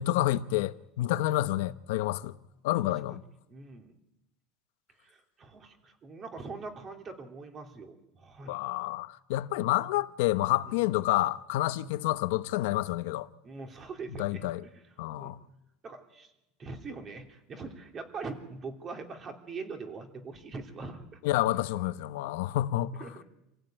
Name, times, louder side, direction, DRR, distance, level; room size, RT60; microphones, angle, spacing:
voice 1, 0.0-2.4 2.6-3.2 8.5-13.3 14.2-14.6 15.0-15.4 21.2-23.0, left 15 dB, 80° left, 1.0 m, -29 dB
voice 2, 3.5-3.9 5.0-8.5 10.7-10.8 13.4-14.5 15.1-15.3 15.8-16.3 16.6-21.2 23.0-23.2, right 4 dB, 25° right, 3.0 m, -42 dB
27.0 x 15.5 x 9.0 m
supercardioid pair, 150°, 0 cm